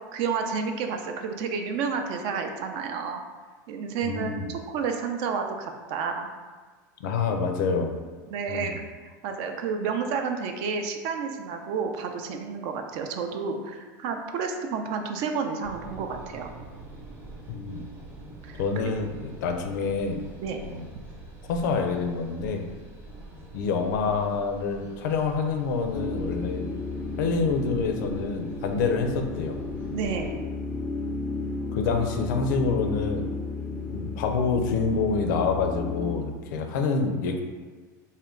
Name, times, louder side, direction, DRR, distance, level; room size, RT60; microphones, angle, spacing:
voice 1, 0.1-3.2 3.7-6.3 8.3-16.5 18.4-19.0 20.4-20.6 29.9-30.4, right 5 dB, 60° right, 5 dB, 0.5 m, -30 dB
voice 2, 4.0-4.5 7.0-7.9 8.5-8.7 17.5-17.8 18.6-20.3 20.6-20.9 21.5-22.7 23.5-26.7 27.2-29.6 31.7-33.3 33.9-37.4, left 4 dB, 75° left, 5 dB, 0.5 m, -27 dB
sound 1, 15.6-30.4, right 2 dB, 20° right, 0.8 m, -45 dB
sound 2, 25.9-36.2, left 3 dB, 15° left, 0.4 m, -33 dB
3.6 x 2.2 x 3.6 m, 1.4 s
supercardioid pair, 115°, 10 cm